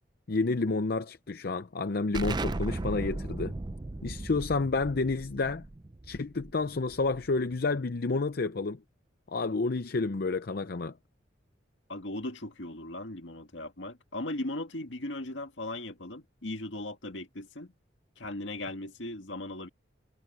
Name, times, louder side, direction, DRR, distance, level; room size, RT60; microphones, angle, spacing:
voice 1, 0.3-3.5 4.0-5.6 6.0-8.8 9.3-10.9, left 3 dB, 55° left, 0.6 m, -30 dB
Explosion, 2.1-7.5, right 2 dB, 25° right, 0.5 m, -37 dB
voice 2, 11.9-17.7 18.2-19.7, left 1 dB, 75° left, 2.1 m, -38 dB
head